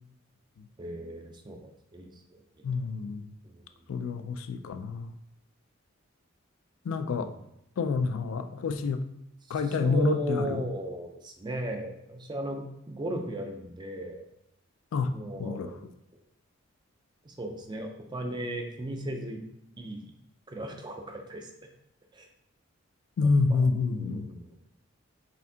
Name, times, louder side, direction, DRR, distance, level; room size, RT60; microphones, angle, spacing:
voice 1, 0.8-2.4 3.4-3.6 7.2-7.4 9.5-14.3 15.1-15.8 17.2-19.4 19.8-20.0 20.5-21.5 22.1-22.3 23.5-24.6, right 1 dB, 20° right, 4 dB, 0.4 m, -37 dB
voice 2, 2.6-3.3 3.9-5.1 6.9-7.3 7.8-9.1 9.5-10.6 14.9-15.1 15.4-15.7 23.2-24.3, left 4 dB, 70° left, 9 dB, 0.3 m, -28 dB
4.2 x 3.5 x 2.7 m, 0.82 s
head